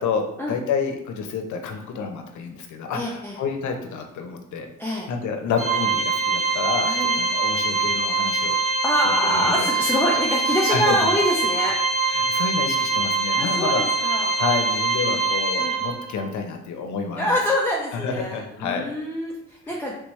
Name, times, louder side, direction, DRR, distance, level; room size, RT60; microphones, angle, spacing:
voice 1, 0.0-4.7 5.1-8.6 9.0-9.7 10.1-10.2 10.7-11.0 12.1-13.9 14.4-17.4 17.9-18.9 19.7-19.8, left 5 dB, 75° left, 4 dB, 0.8 m, -29 dB
voice 2, 2.9-3.4 4.8-5.1 6.9-7.2 8.8-11.8 13.3-14.3 15.6-15.7 17.1-19.9, equal, 5° left, -4 dB, 0.6 m, -25 dB
Organ, 5.6-16.2, right 4 dB, 45° right, 0.7 m, -23 dB
3.4 x 3.4 x 3.1 m, 0.82 s
cardioid pair, 90°, 30 cm